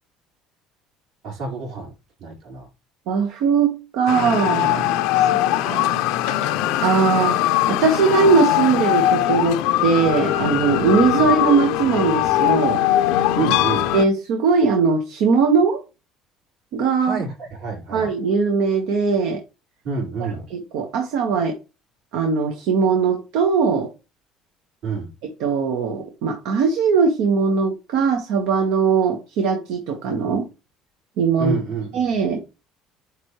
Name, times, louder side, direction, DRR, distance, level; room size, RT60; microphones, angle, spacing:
voice 1, 1.2-1.9 2.2-2.7 11.1-11.2 13.4-13.9 17.0-18.1 19.8-20.4 24.8-25.1 31.4-31.9, right 4 dB, 60° right, 4.1 m, -28 dB
voice 2, 3.1-6.0 6.8-7.4 7.7-12.8 13.9-15.8 16.7-17.2 17.9-19.4 20.5-21.6 22.1-23.9 25.4-30.5 31.2-31.5 31.9-32.4, right 5 dB, 75° right, 1.5 m, -20 dB
sound 1, 4.1-14.0, left 13 dB, 85° left, 0.5 m, -21 dB
9.5 x 3.5 x 3.2 m
cardioid pair, 150°, 0 cm